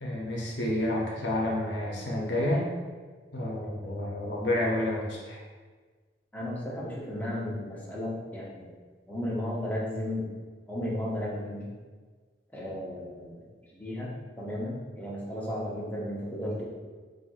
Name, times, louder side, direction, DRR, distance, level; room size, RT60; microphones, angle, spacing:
voice 1, 0.0-2.7 3.3-5.4, left 1 dB, 75° left, -3 dB, 0.6 m, -29 dB
voice 2, 6.3-8.7 9.1-10.3 10.7-11.7 12.5-13.4 13.7-16.6, left 1 dB, 10° left, -6 dB, 0.6 m, -34 dB
4.1 x 2.6 x 2.3 m, 1.4 s
head